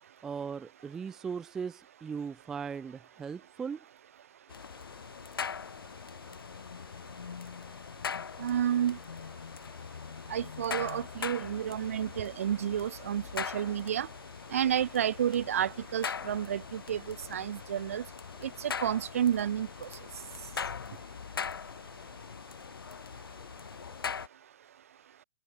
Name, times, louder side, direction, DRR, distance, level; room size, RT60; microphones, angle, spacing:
voice 1, 0.2-3.8, right 6 dB, 5° right, 0.5 m, -38 dB
sound 1, 4.5-24.3, left 6 dB, 85° left, 2.5 m, -41 dB
voice 2, 8.4-9.0 10.3-14.1 14.5-18.0 18.4-19.9, right 9 dB, 40° right, 1.1 m, -31 dB
hypercardioid pair, 180°, 12 cm